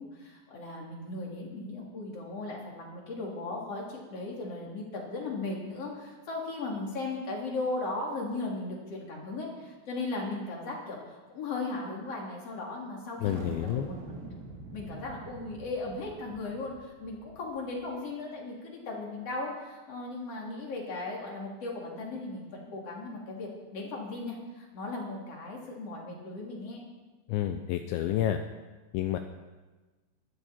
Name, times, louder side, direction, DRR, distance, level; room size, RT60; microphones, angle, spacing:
voice 1, 0.0-13.9 14.7-26.8, left 2 dB, 35° left, -2 dB, 3.2 m, -37 dB
voice 2, 13.2-13.9 27.3-28.4 28.9-29.2, left 12 dB, 90° left, 7 dB, 2.6 m, -29 dB
sound 1, 13.2-17.9, right 3 dB, 75° right, 4.8 m, -45 dB
21.5 x 12.5 x 4.4 m, 1.2 s
omnidirectional pair, 5.9 m